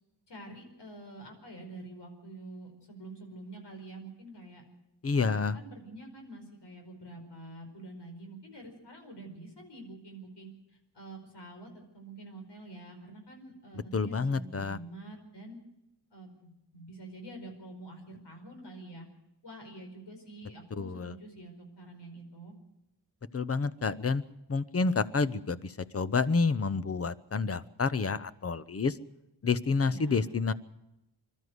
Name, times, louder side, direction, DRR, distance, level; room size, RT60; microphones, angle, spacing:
voice 1, 0.3-4.6 5.1-15.6 16.1-19.1 19.4-22.5 29.9-30.2, right 2 dB, 85° left, 3 dB, 5.1 m, -47 dB
voice 2, 5.0-5.6 13.9-14.8 20.8-21.2 23.3-24.2 24.5-29.0 29.4-30.5, left 4 dB, 35° left, 15 dB, 0.8 m, -29 dB
25.5 x 12.5 x 8.0 m, 0.91 s
wide cardioid pair, 155°, 40 cm